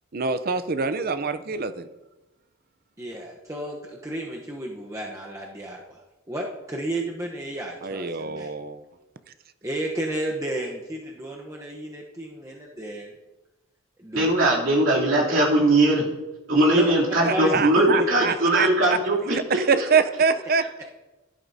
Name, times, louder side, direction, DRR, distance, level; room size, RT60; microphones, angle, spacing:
voice 1, 0.1-1.9 7.8-8.8 17.2-19.0 19.3-20.9, right 5 dB, 45° right, 12 dB, 0.6 m, -25 dB
voice 2, 3.0-6.0 6.3-8.5 9.6-13.1 14.0-14.3 16.7-17.6 18.0-18.6, right 1 dB, 15° right, -1 dB, 0.9 m, -32 dB
voice 3, 14.1-16.1 16.5-19.3, right 1 dB, 65° right, -5 dB, 3.0 m, -20 dB
16.5 x 11.0 x 2.7 m, 1.1 s
head